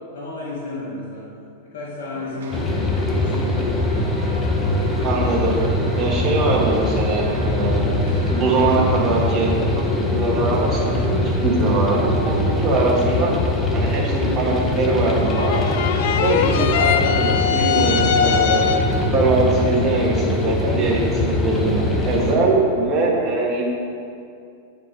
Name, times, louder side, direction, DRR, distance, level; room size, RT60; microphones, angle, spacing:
voice 1, 0.0-1.3 1.6-3.6, left 2 dB, 80° left, -7 dB, 1.6 m, -32 dB
sound 1, 2.1-12.1, right 3 dB, 80° right, 1.1 m, -37 dB
sound 2, 2.5-22.4, left 2 dB, 15° left, 0.7 m, -22 dB
voice 2, 5.0-5.5 6.0-8.0 8.3-9.5 10.0-13.3 13.7-15.6 16.2-18.8 19.1-23.6, right 3 dB, 25° right, -4 dB, 1.5 m, -22 dB
sound 3, 15.2-19.1, left 7 dB, 60° left, 0.4 m, -21 dB
8.4 x 4.4 x 4.2 m, 2.5 s
supercardioid pair, 145°, 0 cm